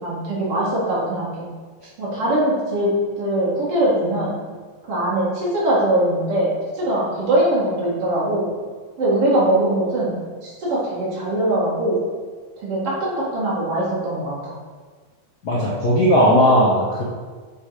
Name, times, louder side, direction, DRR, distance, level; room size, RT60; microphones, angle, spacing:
voice 1, 0.0-1.5 2.0-2.9 3.2-4.4 4.9-6.5 6.7-8.5 9.0-10.1 10.4-12.0 12.6-14.5, right 1 dB, 45° right, -7 dB, 2.9 m, -21 dB
voice 2, 15.4-17.0, equal, 80° left, -5 dB, 0.9 m, -16 dB
7.8 x 5.2 x 5.0 m, 1.5 s
omnidirectional pair, 3.8 m